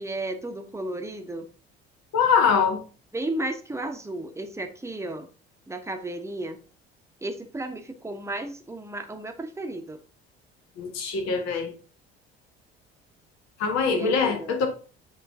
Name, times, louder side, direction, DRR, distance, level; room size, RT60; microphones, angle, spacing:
voice 1, 0.0-1.5 3.1-5.3 5.7-6.6 7.2-10.0 13.8-14.5, right 2 dB, 10° right, 1.0 m, -33 dB
voice 2, 2.1-2.8 10.8-11.7 13.6-14.7, left 6 dB, 60° left, 1.4 m, -23 dB
8.6 x 3.2 x 3.5 m
hypercardioid pair, 55°, 31 cm